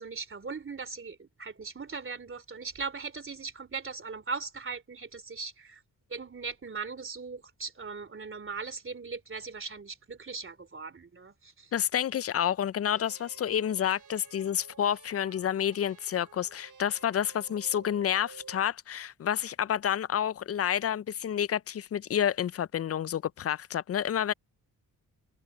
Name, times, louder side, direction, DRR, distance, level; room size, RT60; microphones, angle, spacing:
voice 1, 0.0-5.8 6.1-11.7, right 4 dB, 35° right, 3.0 m, -39 dB
voice 2, 11.7-24.3, left 9 dB, 40° left, 0.4 m, -29 dB
sound 1, 13.0-18.7, right 5 dB, 55° right, 3.5 m, -53 dB
open air
cardioid pair, 75°, 36 cm